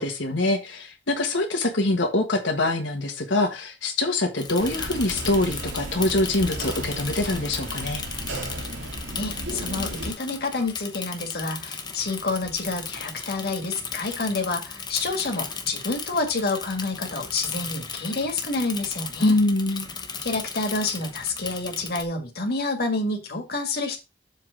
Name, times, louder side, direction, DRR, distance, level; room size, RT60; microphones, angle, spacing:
voice 1, 0.0-8.0 19.2-19.9, left 2 dB, 85° left, 2 dB, 1.5 m, -24 dB
Bicycle / Mechanisms, 4.4-22.0, left 5 dB, 25° left, 0.9 m, -36 dB
sound 1, 4.6-10.1, right 1 dB, 85° right, 2.6 m, -34 dB
voice 2, 9.2-19.4 20.2-24.0, left 3 dB, 55° left, 3 dB, 1.8 m, -28 dB
7.4 x 3.7 x 6.2 m, 0.26 s
head